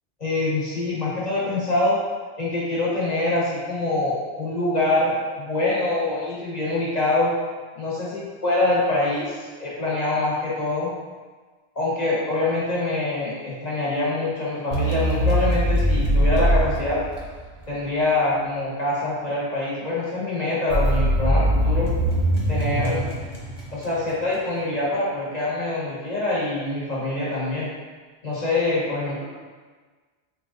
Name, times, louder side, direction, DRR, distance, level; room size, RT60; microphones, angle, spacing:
voice 1, 0.2-2.0 2.4-7.3 7.8-10.9 11.7-17.0 17.7-21.9 22.5-23.0 23.7-27.7 28.2-29.2, left 2 dB, 40° left, -7 dB, 1.1 m, -25 dB
sound 1, 14.7-17.7 20.7-24.1, equal, 45° right, 0.7 m, -22 dB
3.1 x 2.5 x 3.5 m, 1.4 s
omnidirectional pair, 1.1 m